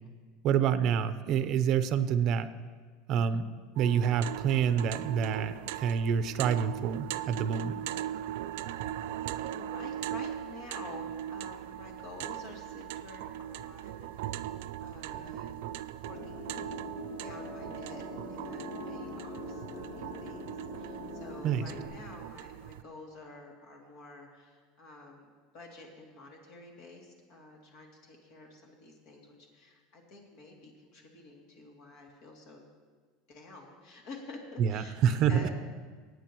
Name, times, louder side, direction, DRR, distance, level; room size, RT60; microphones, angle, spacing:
voice 1, 0.4-2.5 3.1-3.5 3.8-7.8 21.4-21.6 34.6-35.4, right 8 dB, 45° right, 11 dB, 0.7 m, -27 dB
sound 1, 3.8-22.8, right 11 dB, 80° right, 0.3 m, -39 dB
voice 2, 9.5-14.5 14.8-15.6 16.0-16.5 17.2-18.0 18.3-32.6 33.3-34.9 35.3-35.5, left 2 dB, 55° left, 0 dB, 2.7 m, -49 dB
sound 2, 16.1-21.9, left 2 dB, 85° left, 3.4 m, -43 dB
23.0 x 9.2 x 3.1 m, 1.5 s
supercardioid pair, 140°, 0 cm